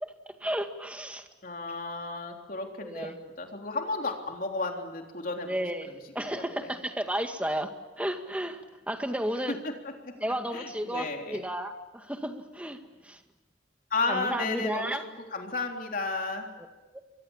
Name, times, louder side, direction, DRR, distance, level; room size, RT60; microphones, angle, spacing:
voice 1, 0.4-1.2 2.8-3.2 5.5-7.7 8.0-9.6 10.2-13.2 14.1-15.0 16.9-17.0, right 1 dB, 5° right, 5 dB, 1.8 m, -33 dB
voice 2, 1.4-3.1 3.4-5.5 5.9-6.7 9.5-9.7 10.0-10.1 10.5-11.4 13.9-16.5, left 3 dB, 50° left, 2 dB, 3.6 m, -33 dB
28.5 x 24.0 x 7.3 m, 1.1 s
head